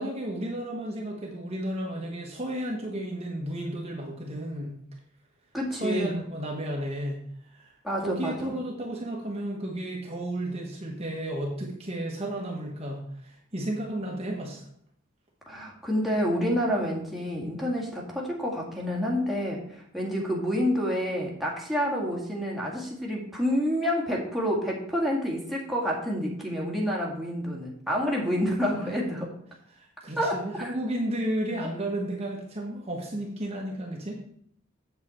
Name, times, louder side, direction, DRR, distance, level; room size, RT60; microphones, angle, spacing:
voice 1, 0.0-4.8 5.8-7.2 7.5-14.7 28.6-28.9 29.7-34.1, right 1 dB, 30° right, -1 dB, 1.3 m, -33 dB
voice 2, 5.5-6.2 7.8-8.5 15.5-29.3 30.2-30.7, equal, ahead, -4 dB, 1.9 m, -28 dB
7.9 x 7.7 x 4.3 m, 0.67 s
head